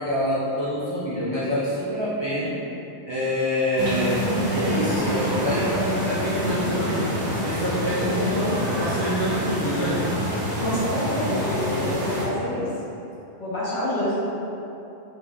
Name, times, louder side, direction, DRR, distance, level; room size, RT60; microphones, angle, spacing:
voice 1, 0.0-2.6 3.0-7.2 7.4-10.1, equal, 45° right, -9 dB, 0.3 m, -26 dB
sound 1, 3.8-12.2, equal, 75° right, 1.2 m, -26 dB
voice 2, 8.0-8.8 10.6-12.7 13.4-14.3, equal, 45° left, -10 dB, 1.0 m, -28 dB
3.5 x 2.6 x 3.2 m, 2.9 s
omnidirectional pair, 1.1 m